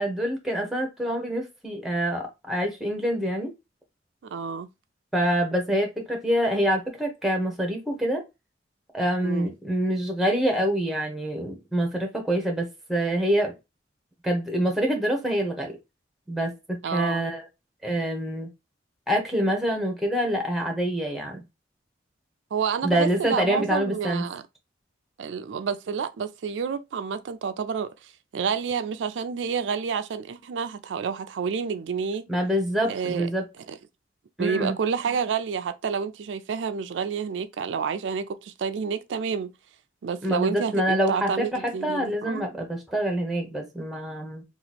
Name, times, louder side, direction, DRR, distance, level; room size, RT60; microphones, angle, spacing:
voice 1, 0.0-3.5 5.1-8.2 8.9-13.5 14.2-15.7 16.3-17.5 17.8-18.5 19.1-21.4 22.8-24.2 32.3-33.4 34.4-34.8 40.2-44.4, equal, ahead, 0.9 m, -26 dB
voice 2, 4.2-4.7 9.2-9.5 16.8-17.3 22.5-24.4 25.2-32.3 32.9-33.3 33.7-33.8 34.4-39.5 40.0-42.5, right 6 dB, 85° right, 0.4 m, -29 dB
2.9 x 2.4 x 4.0 m
head